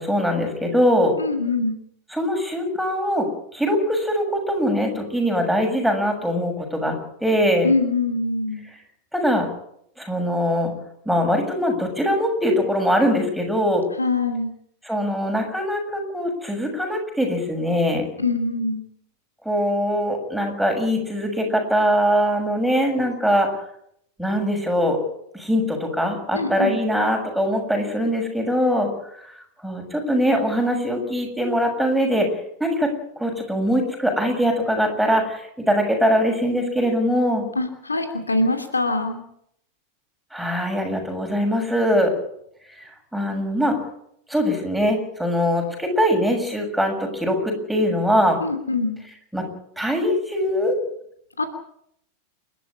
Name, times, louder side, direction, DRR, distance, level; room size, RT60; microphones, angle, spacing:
voice 1, 0.0-1.2 2.1-3.3 3.5-6.9 7.2-7.7 9.1-9.5 10.0-10.7 11.0-13.8 14.8-18.1 19.4-23.5 24.2-25.0 25.3-28.9 29.6-32.3 32.6-32.9 33.2-37.5 40.3-42.1 43.1-43.8 44.3-48.4 49.3-49.4 49.8-50.8, equal, ahead, 2 dB, 6.8 m, -22 dB
voice 2, 1.2-1.7 7.6-8.6 14.0-14.5 18.2-18.8 26.3-26.7 37.6-39.2 48.4-49.0 51.4-51.5, left 3 dB, 80° left, 6 dB, 2.8 m, -23 dB
29.0 x 12.5 x 8.6 m, 0.73 s
figure-of-eight pair, 90°, 0 cm